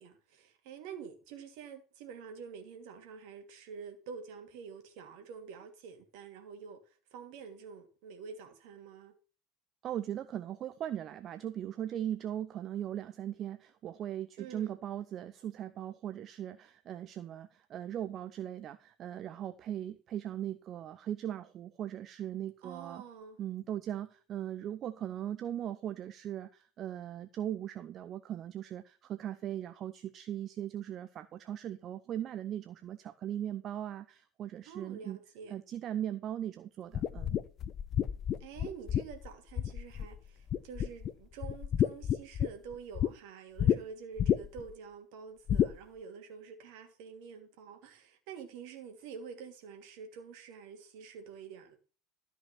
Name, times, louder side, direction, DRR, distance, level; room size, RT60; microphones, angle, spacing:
voice 1, 0.0-6.8 7.1-9.1 14.4-14.7 22.6-23.4 34.7-35.5 38.4-51.8, right 6 dB, 55° right, 2.6 m, -47 dB
voice 2, 9.8-23.0 23.4-35.2 35.5-37.4, right 11 dB, 40° right, 0.8 m, -39 dB
sound 1, 36.9-40.2 40.5-41.1 41.4-43.1 43.6-43.8 44.2-44.7 45.5-45.7, left 10 dB, 35° left, 0.6 m, -30 dB
13.5 x 5.5 x 6.0 m
figure-of-eight pair, 75°, 0 cm